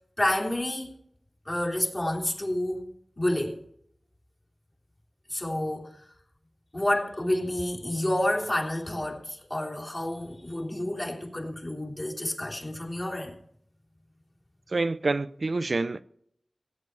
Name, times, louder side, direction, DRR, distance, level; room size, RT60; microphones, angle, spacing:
voice 1, 0.2-1.0 1.4-2.8 3.2-3.6 5.3-6.0 6.7-13.3, left 1 dB, 35° left, 3.3 m, -29 dB
voice 2, 14.7-16.0, right 3 dB, 65° right, 0.6 m, -27 dB
16.0 x 9.4 x 4.7 m
wide cardioid pair, 55°, 0 cm